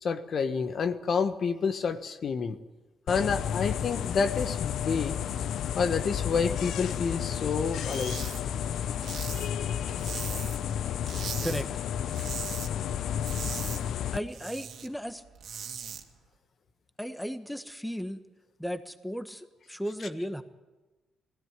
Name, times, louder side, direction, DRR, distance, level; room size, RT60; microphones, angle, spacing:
voice 1, 0.0-2.6 3.1-5.2 5.8-8.2, left 5 dB, 55° left, 9 dB, 1.4 m, -29 dB
sound 1, 3.1-14.2, left 9 dB, 75° left, 0.7 m, -32 dB
sound 2, 7.8-8.4 8.7-10.7 11.0-11.6 11.9-12.7 13.0-14.9 15.2-16.0, right 8 dB, 70° right, 2.1 m, -39 dB
voice 2, 14.1-15.2 17.0-18.2 18.6-20.4, equal, 5° left, 9 dB, 1.4 m, -35 dB
19.0 x 16.0 x 9.7 m, 1.2 s
cardioid pair, 80°, 0 cm